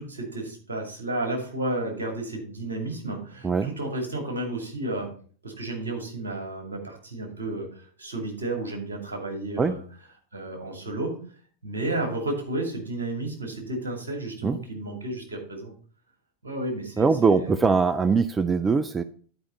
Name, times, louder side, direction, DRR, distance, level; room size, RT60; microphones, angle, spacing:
voice 1, 0.0-5.1 5.4-9.8 10.3-11.1 11.6-15.7 16.4-17.7, right 2 dB, 70° right, 2 dB, 2.4 m, -32 dB
voice 2, 17.0-19.0, right 5 dB, 15° right, 12 dB, 0.4 m, -22 dB
11.0 x 4.9 x 4.1 m, 0.44 s
figure-of-eight pair, 90°, 0 cm